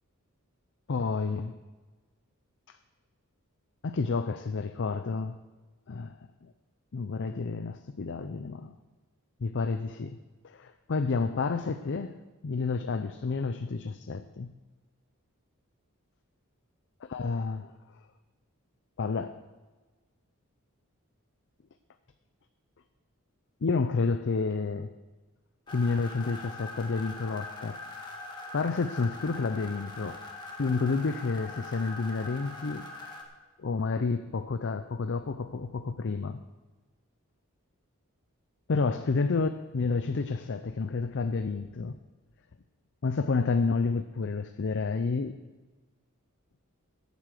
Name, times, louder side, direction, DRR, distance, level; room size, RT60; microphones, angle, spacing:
voice 1, 0.9-1.6 2.7-2.8 3.8-5.4 5.9-6.5 6.9-8.7 9.4-10.2 10.4-12.2 12.4-14.5 17.1-17.7 19.0-19.4 23.6-24.9 25.7-27.8 28.5-30.2 30.6-32.9 33.6-36.4 38.7-42.0 43.0-45.4, left 4 dB, 55° left, 10 dB, 0.5 m, -30 dB
sound 1, 25.7-33.2, left 2 dB, 20° left, 1.7 m, -42 dB
13.5 x 8.4 x 6.6 m, 1.2 s
head